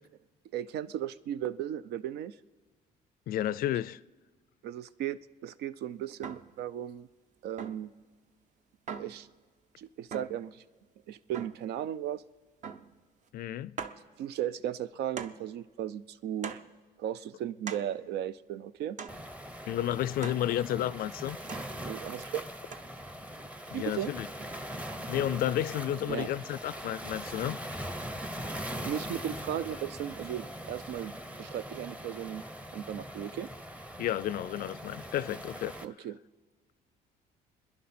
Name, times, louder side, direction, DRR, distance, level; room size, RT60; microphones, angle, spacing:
voice 1, 0.5-2.4 4.6-7.1 7.4-7.9 9.0-9.3 9.8-10.6 11.1-12.2 14.2-16.6 17.0-19.0 21.8-22.4 23.7-24.1 26.1-26.3 28.8-31.1 31.4-32.4 32.7-33.5 35.8-36.2, right 11 dB, 75° right, 0.5 m, -36 dB
voice 2, 3.3-4.0 13.3-13.8 19.7-21.4 23.7-24.3 25.1-27.6 34.0-35.7, left 12 dB, 60° left, 0.4 m, -31 dB
sound 1, 6.2-6.6 7.6-7.9 8.9-9.2 10.1-10.5 11.3-11.7 12.6-13.0 13.3-13.4 13.8-14.0 15.2-15.5 16.4-16.8 17.7-18.0 19.0-19.3 20.2-20.5 21.5-21.8 22.7-22.8, right 6 dB, 45° right, 0.8 m, -41 dB
Waves surf, 19.1-35.9, equal, 10° right, 0.7 m, -41 dB
29.0 x 10.5 x 4.3 m
cardioid pair, 110°, 17 cm